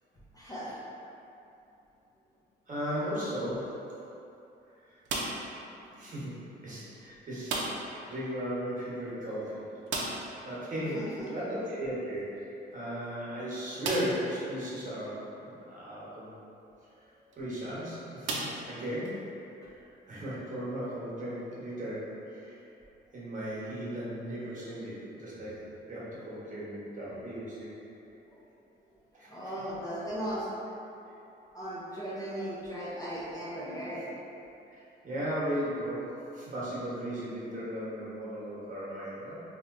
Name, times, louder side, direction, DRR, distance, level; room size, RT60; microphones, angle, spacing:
voice 1, 0.3-0.8 2.8-3.1 10.9-11.3 28.3-28.4 29.3-30.5 31.5-34.1, equal, 20° left, -9 dB, 0.7 m, -37 dB
voice 2, 2.7-3.7 4.8-5.0 6.0-6.4 6.6-7.6 7.9-9.6 10.4-11.0 11.3-16.3 17.3-18.4 18.7-19.2 20.1-22.6 23.1-27.7 29.1-29.3 34.7-39.4, equal, 40° right, -9 dB, 1.2 m, -36 dB
sound 1, 5.0-5.6 7.4-8.0 8.3-8.4 8.7-8.8 9.9-10.4 12.2-12.3 12.9-13.0 13.8-14.3 15.0-15.1 17.1-17.4 18.2-19.1, right 3 dB, 75° right, 0.5 m, -34 dB
3.1 x 2.9 x 2.6 m, 2.8 s
cardioid pair, 90°, 20 cm